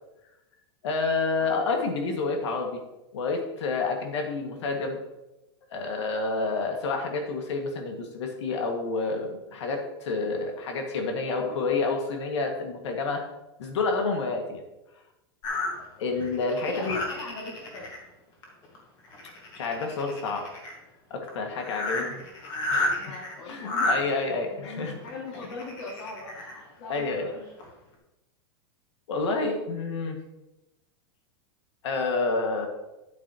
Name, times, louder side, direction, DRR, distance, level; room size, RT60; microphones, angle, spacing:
voice 1, 0.8-2.8 3.1-5.0 5.7-13.2 13.6-14.6 16.0-17.0 19.5-20.5 21.1-22.2 22.7-23.0 23.5-25.0 26.9-27.3 29.1-30.2 31.8-32.7, left 3 dB, 90° left, 3 dB, 1.9 m, -29 dB
voice 2, 11.3-11.8 16.7-17.9 22.0-22.1 23.0-24.1 24.4-27.5, left 3 dB, 50° left, -5 dB, 2.2 m, -41 dB
sound 1, 15.4-18.0 18.4-18.8 19.0-20.7 21.3-21.4 21.6-24.0 25.0-26.5 27.1-27.2 27.6-27.7, left 2 dB, 30° left, 1.7 m, -31 dB
9.6 x 8.5 x 3.0 m, 0.97 s
supercardioid pair, 175°, 14 cm